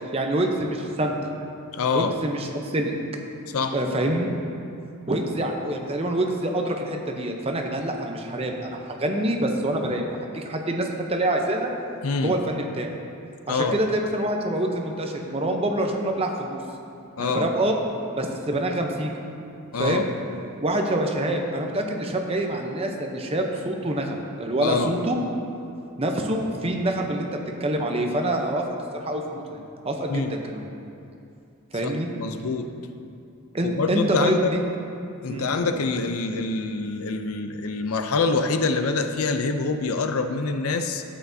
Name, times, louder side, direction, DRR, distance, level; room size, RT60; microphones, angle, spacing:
voice 1, 0.1-1.2 1.9-2.9 3.6-4.3 5.1-10.0 10.3-11.7 12.2-12.9 13.5-16.6 17.2-17.7 18.1-19.1 19.8-20.0 20.6-25.2 26.0-28.6 28.9-30.7 31.7-32.1 33.5-34.6 35.3-35.7, right 1 dB, 25° right, 2 dB, 0.7 m, -26 dB
voice 2, 1.7-2.2 3.5-3.8 12.0-12.4 13.5-13.8 17.2-17.5 19.7-20.1 24.6-24.9 30.1-30.4 31.8-32.7 33.6-34.5 35.2-41.0, left 4 dB, 75° left, 7 dB, 0.5 m, -25 dB
12.5 x 8.4 x 2.7 m, 2.6 s
head